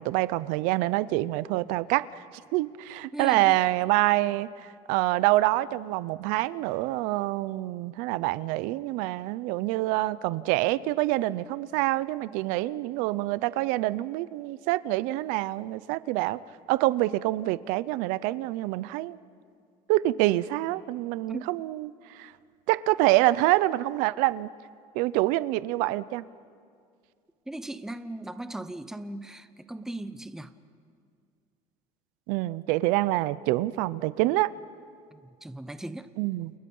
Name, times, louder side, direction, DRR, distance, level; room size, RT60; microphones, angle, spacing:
voice 1, 0.0-2.2 2.5-4.5 4.9-16.4 16.7-19.2 19.9-22.3 22.7-24.5 24.9-26.2 32.3-34.5 36.2-36.5, right 17 dB, 80° right, 17 dB, 0.7 m, -26 dB
voice 2, 3.1-3.6 21.3-21.6 27.5-30.5 35.1-36.1, right 1 dB, 5° right, 11 dB, 0.7 m, -38 dB
29.5 x 29.0 x 5.5 m, 2.3 s
cardioid pair, 155°, 14 cm